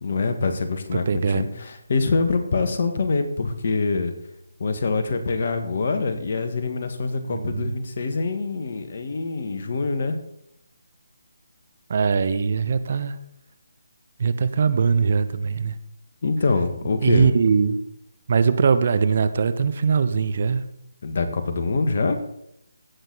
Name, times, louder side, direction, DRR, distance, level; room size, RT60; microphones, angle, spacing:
voice 1, 0.0-4.1 4.6-10.1 16.2-17.3 21.0-22.1, left 3 dB, 50° left, 6 dB, 1.7 m, -25 dB
voice 2, 1.1-1.4 7.3-7.7 11.9-13.2 14.2-15.8 17.0-17.8 18.3-20.6, right 5 dB, 45° right, 12 dB, 0.8 m, -21 dB
16.5 x 6.5 x 4.1 m, 0.78 s
figure-of-eight pair, 155°, 0 cm